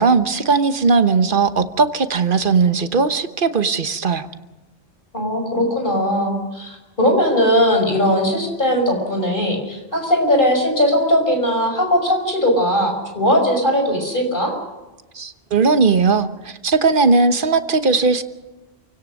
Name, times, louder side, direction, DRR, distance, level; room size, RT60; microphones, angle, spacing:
voice 1, 0.0-4.3 15.1-18.2, right 4 dB, 55° right, 9 dB, 1.3 m, -18 dB
voice 2, 5.1-14.5, equal, 50° left, 3 dB, 5.8 m, -19 dB
28.0 x 17.5 x 6.5 m, 1.1 s
omnidirectional pair, 1.1 m